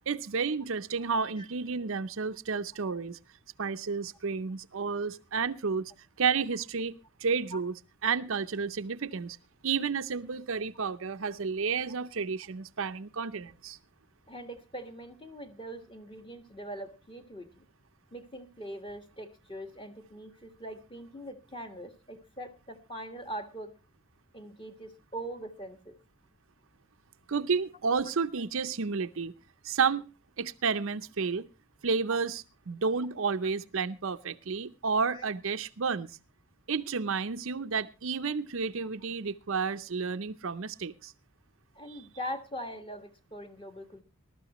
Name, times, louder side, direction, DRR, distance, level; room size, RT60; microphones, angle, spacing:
voice 1, 0.1-3.2 3.6-5.9 6.2-7.7 8.0-9.4 9.6-13.8 27.3-29.3 29.6-30.1 30.4-31.5 31.8-36.1 36.7-41.1 41.9-42.0, right 5 dB, 60° right, 10 dB, 0.6 m, -31 dB
voice 2, 14.3-17.6 18.1-23.7 24.3-26.0 32.1-32.2 35.1-35.2 38.8-38.9 41.7-44.0, right 1 dB, 25° left, 5 dB, 1.5 m, -42 dB
20.5 x 12.5 x 3.0 m, 0.30 s
head